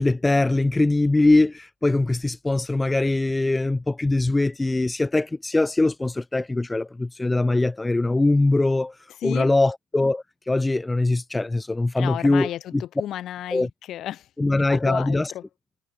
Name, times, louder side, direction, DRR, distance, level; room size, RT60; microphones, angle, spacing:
voice 1, 0.0-9.0 9.2-12.5 13.5-13.7 14.4-15.3, left 2 dB, 10° left, 2.9 m, -22 dB
voice 2, 9.2-9.5 12.0-14.3 14.7-15.4, left 12 dB, 40° left, 7.1 m, -33 dB
cardioid pair, 155°, 0 cm